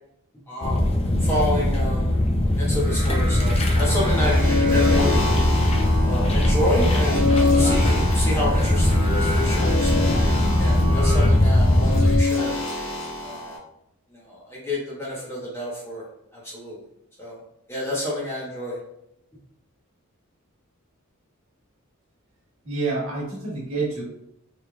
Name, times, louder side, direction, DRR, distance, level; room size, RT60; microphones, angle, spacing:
voice 1, 0.5-0.8 1.2-2.2 2.6-5.2 6.0-10.1 10.6-12.5 13.2-13.6 14.1-16.0 16.3-16.8 17.2-17.4 17.7-18.8, left 1 dB, 10° left, -7 dB, 1.0 m, -29 dB
sound 1, 0.6-12.2, left 1 dB, 25° left, 0.4 m, -20 dB
Singing, 2.5-11.3, left 2 dB, 25° right, 1.0 m, -35 dB
sound 2, 3.8-13.6, left 3 dB, 85° left, 1.0 m, -27 dB
voice 2, 22.6-24.0, right 3 dB, 75° right, -5 dB, 1.4 m, -27 dB
3.3 x 3.2 x 2.3 m, 0.79 s
head